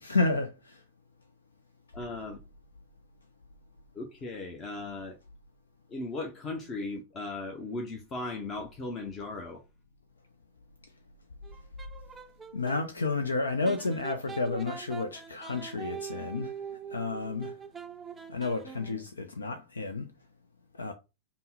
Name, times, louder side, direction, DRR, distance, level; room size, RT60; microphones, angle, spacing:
voice 1, 0.0-0.8 12.5-16.6 16.9-17.6 18.3-20.1 20.8-20.9, left 3 dB, 75° left, 0.4 m, -31 dB
voice 2, 1.9-2.4 3.9-5.2 5.9-9.6, left 2 dB, 25° left, 0.7 m, -37 dB
sound 1, 11.4-12.8 13.6-19.1, right 7 dB, 15° right, 0.4 m, -43 dB
5.5 x 2.1 x 3.9 m
figure-of-eight pair, 90°, 0 cm